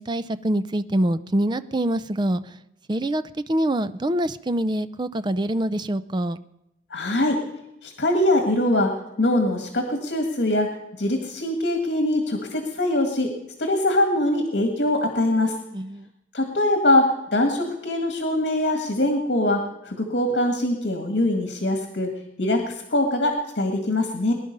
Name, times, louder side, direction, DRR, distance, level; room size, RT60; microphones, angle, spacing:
voice 1, 0.0-2.5 2.9-6.4 15.7-16.1, right 1 dB, 25° right, 13 dB, 0.5 m, -25 dB
voice 2, 6.9-7.4 7.8-8.9 9.2-10.7 11.0-13.3 13.6-15.6 16.3-22.1 22.4-24.3, left 1 dB, 65° left, 3 dB, 1.9 m, -22 dB
21.0 x 11.0 x 5.4 m, 0.90 s
head